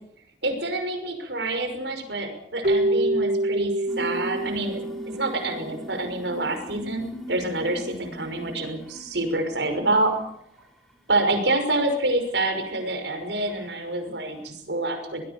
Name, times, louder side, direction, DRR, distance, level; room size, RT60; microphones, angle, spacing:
voice 1, 0.4-10.1 11.1-15.2, right 2 dB, 85° right, 6 dB, 5.8 m, -27 dB
Keyboard (musical), 2.6-5.9, right 1 dB, 55° right, 1.7 m, -26 dB
sound 1, 3.9-10.3 10.6-11.1 11.9-12.0 12.8-12.9 13.5-13.7, equal, ahead, 4.8 m, -41 dB
24.0 x 20.0 x 7.1 m, 0.69 s
head